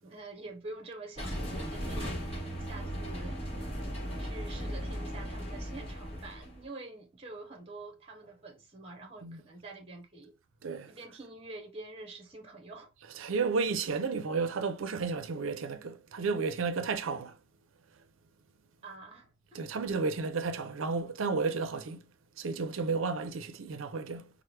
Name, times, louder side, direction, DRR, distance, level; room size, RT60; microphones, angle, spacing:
voice 1, 0.0-3.4 4.2-10.4 10.9-12.9 18.8-19.6, right 2 dB, 30° right, 0.8 m, -47 dB
sound 1, 1.2-6.6, equal, 30° left, 1.3 m, -37 dB
voice 2, 13.2-17.4 19.5-22.0 22.4-24.3, right 4 dB, 85° right, 0.5 m, -32 dB
4.4 x 2.1 x 3.2 m
head